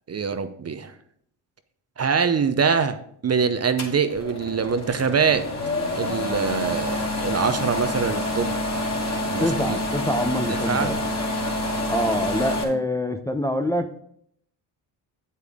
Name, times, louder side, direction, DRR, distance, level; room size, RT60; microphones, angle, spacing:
voice 1, 0.1-0.9 2.0-3.0 3.2-5.4 6.0-8.8 9.3-9.8 10.5-10.9, right 6 dB, 30° right, 10 dB, 0.8 m, -24 dB
sound 1, 3.8-12.6, left 1 dB, 30° left, 2.7 m, -27 dB
voice 2, 9.4-11.0 11.9-13.9, equal, 5° left, 6 dB, 0.7 m, -25 dB
8.4 x 8.2 x 3.6 m, 0.67 s
supercardioid pair, 65°, 49 cm